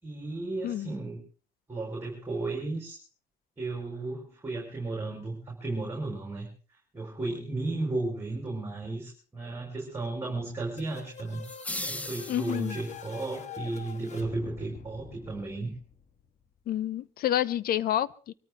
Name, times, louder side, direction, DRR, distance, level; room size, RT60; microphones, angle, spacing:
voice 1, 0.0-1.2 1.7-3.0 3.6-11.4 11.8-15.7, right 2 dB, 15° right, 0 dB, 4.8 m, -34 dB
sound 1, 10.8-16.4, left 7 dB, 45° left, 1.5 m, -46 dB
sound 2, 11.4-13.0, left 1 dB, 10° left, 0.7 m, -37 dB
voice 2, 12.3-12.8 16.7-18.3, left 12 dB, 60° left, 19 dB, 0.8 m, -29 dB
24.5 x 13.5 x 3.6 m, 0.40 s
cardioid pair, 110°, 17 cm